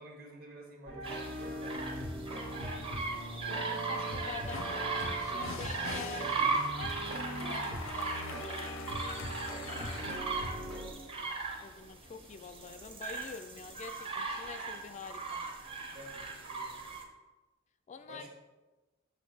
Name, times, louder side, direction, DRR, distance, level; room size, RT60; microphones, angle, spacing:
voice 1, 0.0-2.2 6.0-6.3 9.5-11.4 15.9-16.8 18.1-18.3, right 1 dB, 50° right, 0 dB, 1.5 m, -52 dB
sound 1, 0.9-10.9, equal, 75° right, 1.8 m, -41 dB
sound 2, 1.0-17.0, right 4 dB, 30° right, 0.8 m, -38 dB
voice 2, 3.1-6.9 7.5-8.9 11.6-15.5 17.9-18.3, left 5 dB, 35° left, 9 dB, 0.3 m, -47 dB
sound 3, 4.0-10.2, left 5 dB, 90° left, 0.6 m, -46 dB
6.4 x 3.4 x 5.9 m, 1.2 s
head